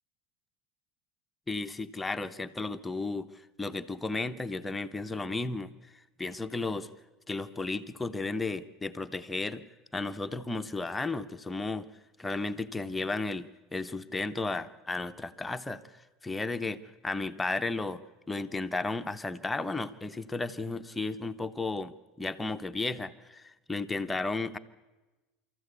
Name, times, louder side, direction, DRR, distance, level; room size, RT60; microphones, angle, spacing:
voice 1, 1.5-3.3 3.6-5.7 6.2-6.9 7.3-9.6 9.9-11.9 12.2-15.8 16.2-18.0 18.3-24.6, left 3 dB, 10° left, 9 dB, 0.9 m, -34 dB
24.5 x 14.5 x 8.1 m, 1.1 s
supercardioid pair, 115°, 0 cm